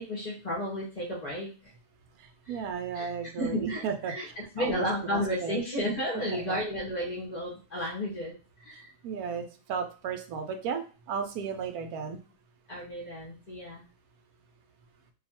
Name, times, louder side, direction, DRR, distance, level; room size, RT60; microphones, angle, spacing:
voice 1, 0.0-1.5 2.5-2.6 2.9-3.1 3.4-4.2 4.5-8.3 8.6-8.9 12.7-13.8, equal, 35° left, -5 dB, 0.6 m, -32 dB
voice 2, 2.5-5.6 6.1-6.6 7.7-7.8 9.0-10.8 11.1-12.2, right 6 dB, 70° right, 6 dB, 1.0 m, -34 dB
2.7 x 2.3 x 4.2 m, 0.35 s
omnidirectional pair, 1.7 m